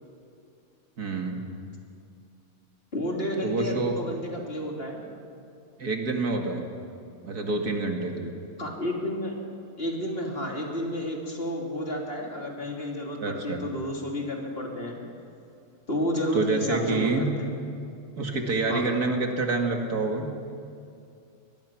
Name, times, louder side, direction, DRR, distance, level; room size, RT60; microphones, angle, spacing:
voice 1, 1.0-1.4 3.4-4.0 5.8-6.7 7.2-8.3 13.2-13.7 16.3-17.3 18.2-20.3, right 3 dB, 85° right, 3 dB, 2.6 m, -27 dB
voice 2, 2.9-5.0 8.6-9.4 9.8-15.0 15.9-17.5 18.7-19.0, equal, 40° left, 0 dB, 3.2 m, -31 dB
23.5 x 20.5 x 6.0 m, 2.5 s
omnidirectional pair, 1.6 m